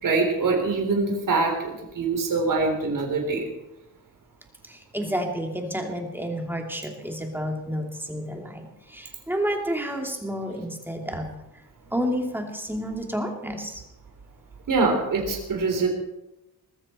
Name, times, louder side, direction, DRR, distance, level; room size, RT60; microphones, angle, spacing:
voice 1, 0.0-3.5 14.7-15.9, right 3 dB, 55° right, 2 dB, 3.7 m, -24 dB
voice 2, 4.6-11.3 11.9-13.8, equal, 5° right, 2 dB, 2.7 m, -30 dB
20.5 x 14.0 x 4.4 m, 0.94 s
wide cardioid pair, 125°, 39 cm